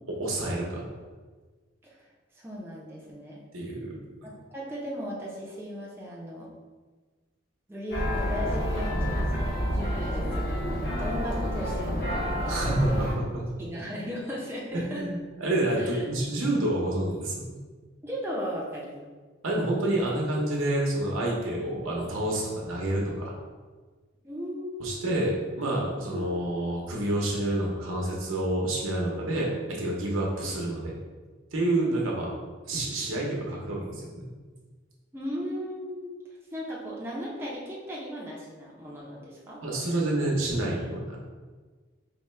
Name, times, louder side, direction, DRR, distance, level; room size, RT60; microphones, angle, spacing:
voice 1, 0.2-0.8 3.5-3.9 12.5-13.2 14.7-17.5 19.4-23.3 24.8-30.9 31.5-32.3 32.7-34.3 39.6-41.2, right 1 dB, 90° right, -3 dB, 0.9 m, -28 dB
voice 2, 2.3-3.4 4.2-6.5 7.7-13.1 13.6-15.1 15.8-16.1 18.0-19.1 24.2-25.3 26.1-26.3 30.2-30.5 31.7-32.0 35.1-36.1 36.5-39.6, equal, 10° right, -5 dB, 0.5 m, -37 dB
sound 1, 7.9-13.2, equal, 45° left, 0.9 m, -29 dB
4.6 x 2.2 x 3.2 m, 1.4 s
head